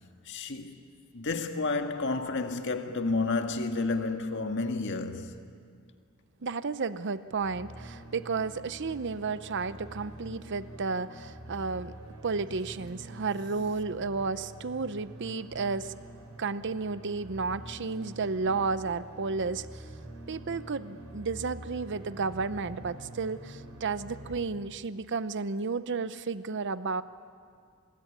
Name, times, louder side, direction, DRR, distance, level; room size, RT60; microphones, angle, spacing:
voice 1, 0.2-0.8 1.1-5.4, left 3 dB, 60° left, 1.7 m, -30 dB
voice 2, 6.4-11.9 12.2-16.0 16.4-19.8 20.3-27.0, right 4 dB, 60° right, 0.7 m, -32 dB
sound 1, 7.4-24.4, right 1 dB, 85° right, 5.6 m, -46 dB
25.5 x 21.5 x 9.8 m
head